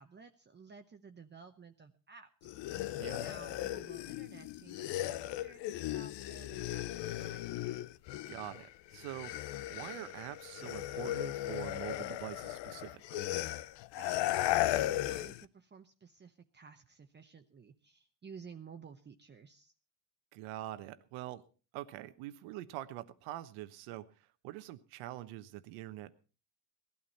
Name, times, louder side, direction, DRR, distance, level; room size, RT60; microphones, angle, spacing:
voice 1, 0.0-2.6 3.2-7.6 13.9-19.7, right 5 dB, 25° right, 5 dB, 0.9 m, -54 dB
sound 1, 2.4-8.7 8.9-15.5, left 14 dB, 65° left, 0.7 m, -36 dB
voice 2, 8.3-9.3 9.7-13.2 20.3-21.4 21.7-24.1 24.4-26.1, right 14 dB, 90° right, 12 dB, 1.2 m, -44 dB
18.5 x 12.5 x 4.2 m, 0.36 s
cardioid pair, 115°, 46 cm